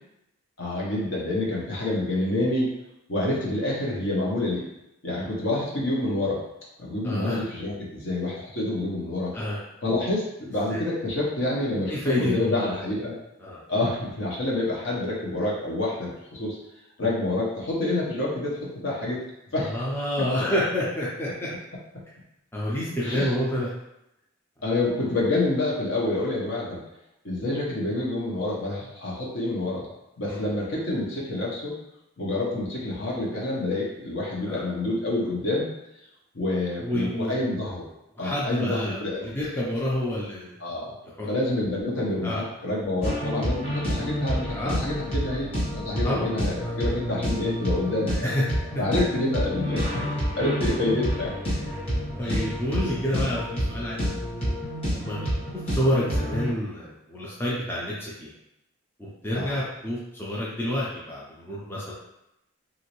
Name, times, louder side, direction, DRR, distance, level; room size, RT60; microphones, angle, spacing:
voice 1, 0.6-2.7 3.1-4.7 5.0-6.4 6.8-9.3 9.8-13.1 13.7-16.6 17.0-19.2 19.5-19.7 23.0-23.3 24.6-26.8 27.2-29.9 30.2-31.8 32.2-35.7 36.3-37.8 38.2-39.3 40.6-41.0 41.3-48.3 48.8-51.3 52.2-52.5 53.1-53.2 59.3-59.6, left 2 dB, 60° left, -4 dB, 0.8 m, -28 dB
voice 2, 7.0-7.4 9.3-9.6 10.7-10.8 11.9-12.7 13.4-13.6 19.7-21.5 22.5-23.7 30.3-30.4 34.5-34.6 36.8-37.5 38.2-40.6 41.2-41.3 42.2-42.4 44.5-44.8 46.0-46.3 46.6-46.7 48.2-48.4 52.2-54.1 54.9-55.3 55.6-58.3 59.0-61.9, left 1 dB, 10° left, -7 dB, 0.4 m, -28 dB
sound 1, 43.0-56.5, equal, 30° left, 1.2 m, -29 dB
3.0 x 2.6 x 2.9 m, 0.86 s
head